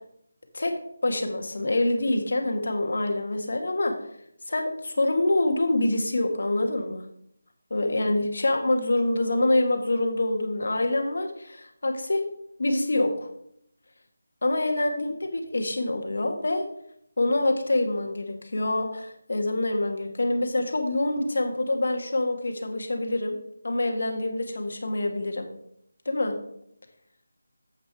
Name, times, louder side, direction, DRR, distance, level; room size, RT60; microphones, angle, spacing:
voice 1, 1.0-3.9 4.5-7.0 7.7-12.2 12.6-13.3 14.4-16.6 17.2-23.4 23.6-25.5 26.0-26.3, left 2 dB, 65° left, 5 dB, 1.7 m, -26 dB
7.9 x 6.3 x 4.6 m, 0.71 s
figure-of-eight pair, 175°, 0 cm